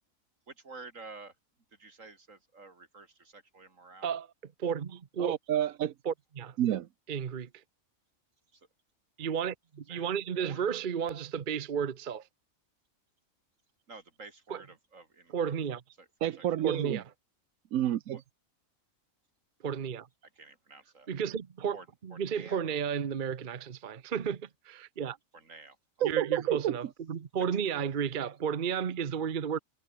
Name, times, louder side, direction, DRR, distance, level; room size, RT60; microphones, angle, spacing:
voice 1, 0.5-1.3 1.8-4.1 8.5-8.6 9.9-10.7 13.9-15.5 16.0-16.1 16.4-16.5 18.1-18.2 20.4-21.1 21.7-21.9 22.1-22.6 25.3-25.8 27.4-27.6, right 3 dB, 70° right, 3.5 m, -50 dB
voice 2, 4.6-5.4 6.0-6.6 7.1-7.5 9.2-12.2 14.5-14.6 15.3-15.8 16.6-17.0 19.6-20.1 21.1-21.8 22.0-25.2 26.0-29.6, right 7 dB, 45° right, 0.9 m, -33 dB
voice 3, 5.2-5.9 6.6-6.9 16.2-17.0 17.7-18.2 26.0-26.8, right 11 dB, 90° right, 1.2 m, -29 dB
omnidirectional pair, 1.4 m